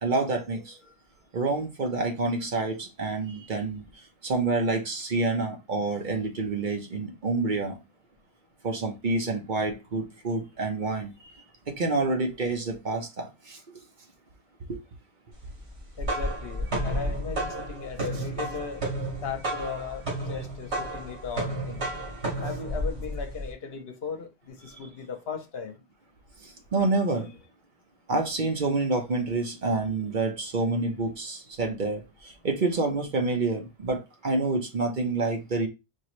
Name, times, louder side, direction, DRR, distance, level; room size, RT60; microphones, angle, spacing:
voice 1, 0.0-0.8 1.3-3.8 4.2-7.8 8.6-11.1 11.7-13.6 14.7-14.8 26.4-27.3 28.1-35.7, right 3 dB, 50° right, 1.0 m, -28 dB
sound 1, 15.7-23.5, right 1 dB, 85° right, 2.3 m, -32 dB
voice 2, 16.0-18.8 19.2-21.9 22.4-25.8, left 5 dB, 70° left, 1.0 m, -37 dB
4.6 x 3.0 x 3.0 m
omnidirectional pair, 1.1 m